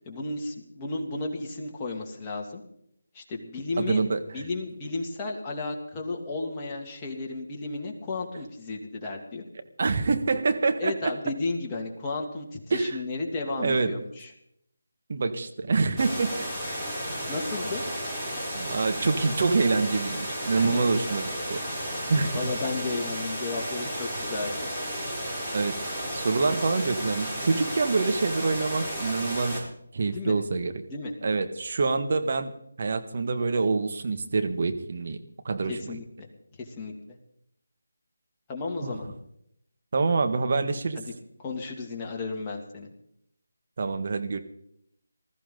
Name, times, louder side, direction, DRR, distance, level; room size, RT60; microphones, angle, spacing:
voice 1, 0.1-2.6 3.1-4.0 4.3-9.4 10.8-14.3 17.3-17.8 20.6-20.8 22.1-24.7 30.1-30.4 30.9-31.1 35.7-36.3 36.6-37.2 38.5-39.1 41.4-42.9, left 3 dB, 20° left, -1 dB, 2.5 m, -33 dB
voice 2, 3.8-4.2 9.8-11.1 12.7-13.0 13.5-13.9 15.1-16.5 18.5-21.6 22.1-22.5 25.5-25.8 26.1-29.6 29.9-30.8 31.2-32.5 32.8-35.2 35.4-36.0 38.8-39.0 39.9-41.0 43.8-44.4, right 4 dB, 50° right, 8 dB, 1.7 m, -26 dB
sound 1, 16.0-29.6, equal, 10° right, 6.2 m, -33 dB
20.0 x 14.5 x 4.0 m, 0.74 s
figure-of-eight pair, 160°, 0 cm